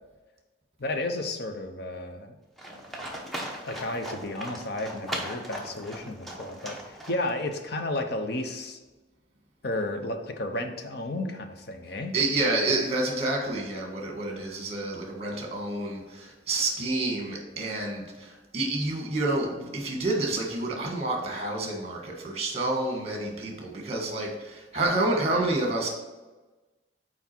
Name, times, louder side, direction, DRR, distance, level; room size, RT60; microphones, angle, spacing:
voice 1, 0.8-2.4 3.7-8.8 9.6-12.1, left 2 dB, 55° left, 6 dB, 0.7 m, -32 dB
Livestock farm animals working animals, 2.6-7.5, right 1 dB, ahead, 0.9 m, -38 dB
voice 2, 12.1-25.9, right 2 dB, 35° right, 1 dB, 1.5 m, -29 dB
6.0 x 4.7 x 4.4 m, 1.2 s
head